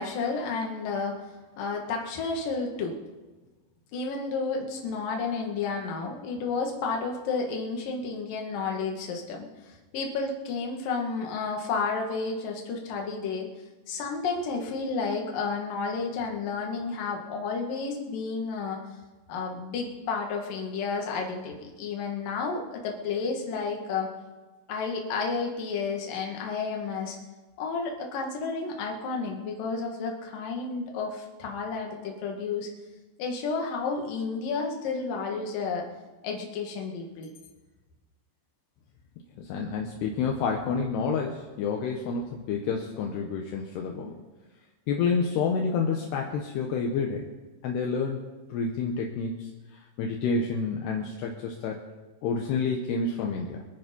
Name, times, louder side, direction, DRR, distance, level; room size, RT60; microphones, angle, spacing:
voice 1, 0.0-3.0 3.9-13.5 13.9-18.8 19.3-24.1 24.7-27.2 27.6-32.7 33.2-35.9 36.2-37.3, left 4 dB, 55° left, 1 dB, 3.4 m, -31 dB
voice 2, 39.4-44.2 44.9-47.3 47.6-48.2 48.5-51.8 52.2-53.7, left 5 dB, 75° left, 1 dB, 3.1 m, -29 dB
24.5 x 9.3 x 5.4 m, 1.2 s
omnidirectional pair, 5.0 m